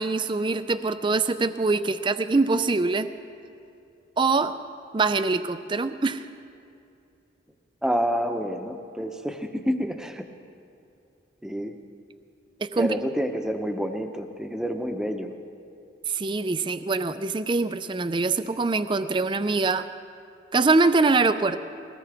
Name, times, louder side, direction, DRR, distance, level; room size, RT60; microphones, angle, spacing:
voice 1, 0.0-3.1 4.2-4.6 4.9-6.2 12.6-13.0 16.1-19.9 20.5-21.6, right 3 dB, 25° right, 12 dB, 0.4 m, -23 dB
voice 2, 7.8-10.3 11.4-11.7 12.8-15.3, equal, 5° right, 5 dB, 0.8 m, -28 dB
21.5 x 18.0 x 3.4 m, 2.6 s
head